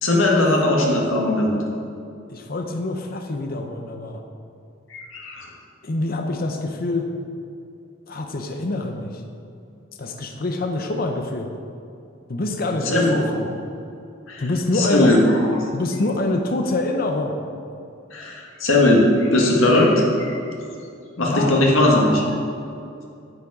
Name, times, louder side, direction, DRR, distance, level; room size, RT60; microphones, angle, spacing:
voice 1, 0.0-1.6 4.9-5.5 12.9-13.1 14.3-14.4 14.8-15.2 18.1-20.4 21.2-22.3, left 1 dB, 85° left, -2 dB, 1.7 m, -18 dB
voice 2, 2.3-4.2 5.8-7.1 8.1-9.2 10.0-11.5 12.3-13.5 14.4-15.2 15.7-17.4 21.3-21.6, left 2 dB, 45° left, 4 dB, 0.7 m, -25 dB
9.2 x 7.2 x 4.9 m, 2.5 s
head